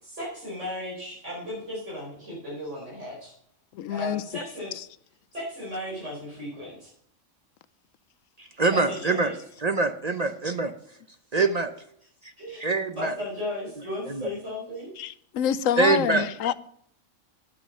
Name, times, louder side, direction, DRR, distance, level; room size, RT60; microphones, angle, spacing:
voice 1, 0.0-3.3 3.9-4.7 5.3-6.9 8.7-9.3 12.4-12.7 13.0-14.9, left 1 dB, 60° right, 5.0 m, -35 dB
voice 2, 3.7-4.2 15.0-16.5, left 9 dB, 75° left, 1.0 m, -27 dB
voice 3, 8.4-11.0 11.3-11.7 12.2-12.3 12.6-13.2 13.8-14.3 15.8-16.3, right 3 dB, 40° right, 0.6 m, -25 dB
9.4 x 9.3 x 5.4 m
omnidirectional pair, 1.4 m